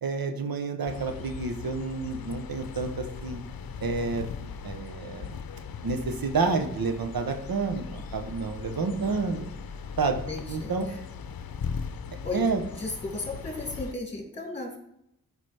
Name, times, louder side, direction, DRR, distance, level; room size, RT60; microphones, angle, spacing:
voice 1, 0.0-3.4 3.8-5.3 5.8-9.4 10.0-10.2 10.5-10.9 12.3-12.6, right 4 dB, 80° right, 6 dB, 0.9 m, -29 dB
sound 1, 0.9-13.9, left 6 dB, 80° left, 0.6 m, -39 dB
voice 2, 10.3-11.0 12.2-12.4 12.7-14.8, left 2 dB, 15° left, -1 dB, 2.4 m, -35 dB
12.5 x 5.0 x 3.3 m, 0.78 s
wide cardioid pair, 100°, 35 cm